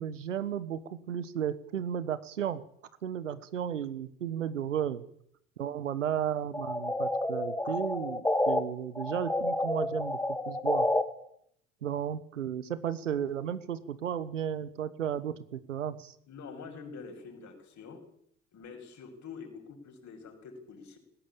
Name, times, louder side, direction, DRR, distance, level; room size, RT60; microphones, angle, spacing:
voice 1, 0.0-2.6 3.0-5.0 5.6-10.2 10.5-10.9 11.8-16.1, right 9 dB, 85° right, 15 dB, 1.4 m, -34 dB
sound 1, 6.5-8.6 9.0-11.0, left 1 dB, 5° left, 2.8 m, -29 dB
voice 2, 16.3-18.0 18.5-21.0, left 5 dB, 50° left, 4 dB, 7.3 m, -46 dB
19.5 x 17.5 x 8.9 m, 0.69 s
hypercardioid pair, 60°, 36 cm